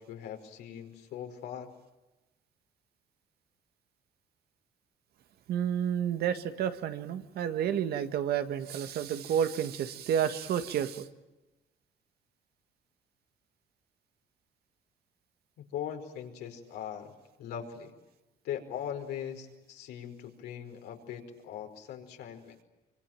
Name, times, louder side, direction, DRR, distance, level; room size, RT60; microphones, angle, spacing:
voice 1, 0.0-1.7 15.6-17.1 17.4-17.9 18.4-22.6, left 9 dB, 80° left, 3 dB, 5.0 m, -40 dB
voice 2, 5.5-11.1, right 9 dB, 70° right, 9 dB, 1.8 m, -30 dB
25.5 x 25.0 x 9.0 m, 1.0 s
cardioid pair, 110°, 17 cm